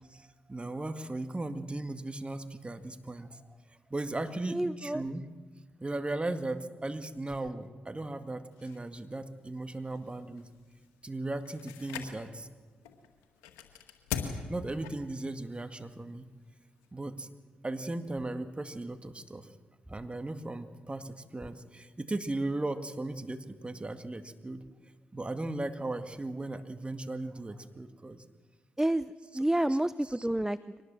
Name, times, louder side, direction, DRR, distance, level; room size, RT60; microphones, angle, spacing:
voice 1, 0.1-5.3 5.8-10.5 11.0-12.5 14.5-16.3 16.9-17.3 17.6-19.5 19.9-24.6 25.1-28.2 29.3-29.4 29.7-29.8 30.0-30.3, right 2 dB, 25° right, 8 dB, 2.1 m, -37 dB
voice 2, 4.5-5.0 28.8-30.8, right 1 dB, 10° right, 16 dB, 0.6 m, -29 dB
sound 1, 8.5-16.9, left 7 dB, 90° left, 1.9 m, -44 dB
24.0 x 19.5 x 7.7 m, 1.4 s
hypercardioid pair, 40°, 4 cm